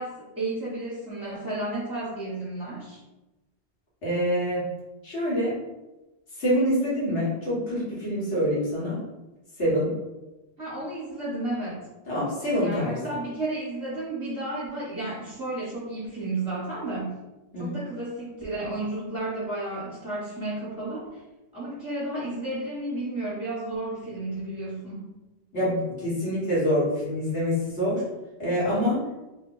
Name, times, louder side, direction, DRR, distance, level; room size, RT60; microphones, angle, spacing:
voice 1, 0.0-3.0 10.6-11.9 12.6-17.1 17.6-21.2 21.5-25.1, right 2 dB, 5° right, -10 dB, 1.0 m, -32 dB
voice 2, 4.0-4.7 5.0-5.5 6.4-9.0 9.6-9.9 12.1-13.0 17.5-17.8 25.5-28.0 28.4-29.0, equal, 85° left, -8 dB, 1.7 m, -25 dB
3.1 x 2.2 x 3.8 m, 1.1 s
omnidirectional pair, 1.1 m